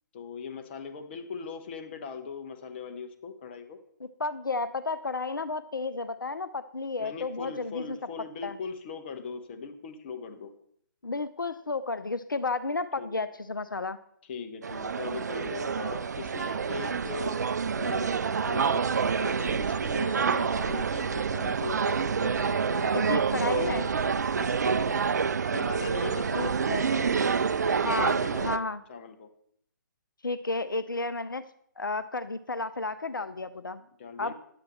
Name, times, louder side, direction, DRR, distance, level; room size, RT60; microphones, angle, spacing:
voice 1, 0.1-3.8 7.0-10.5 13.0-13.2 14.3-17.4 17.8-18.8 19.2-24.0 24.4-25.1 25.5-29.3 34.0-34.3, left 5 dB, 30° left, 6 dB, 0.8 m, -40 dB
voice 2, 4.2-8.0 8.4-8.6 11.0-14.0 22.9-23.9 26.3-26.9 27.8-28.8 30.2-31.4 31.8-33.8 34.2-34.3, left 3 dB, 80° left, 12 dB, 0.5 m, -32 dB
sound 1, 14.6-28.6, right 6 dB, 55° right, 0.4 m, -27 dB
9.7 x 7.6 x 4.3 m, 0.68 s
figure-of-eight pair, 135°, 11 cm